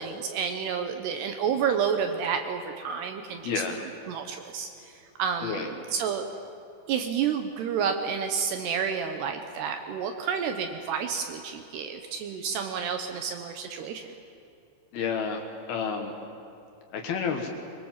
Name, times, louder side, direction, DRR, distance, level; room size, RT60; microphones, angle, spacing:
voice 1, 0.0-3.5 4.1-4.9 5.2-6.2 6.9-14.1, right 7 dB, 70° right, 6 dB, 2.7 m, -30 dB
voice 2, 3.4-3.8 5.4-5.7 14.9-15.4 15.7-16.1 16.9-17.5, left 6 dB, 65° left, 4 dB, 2.9 m, -30 dB
23.5 x 23.0 x 7.5 m, 2.8 s
omnidirectional pair, 5.7 m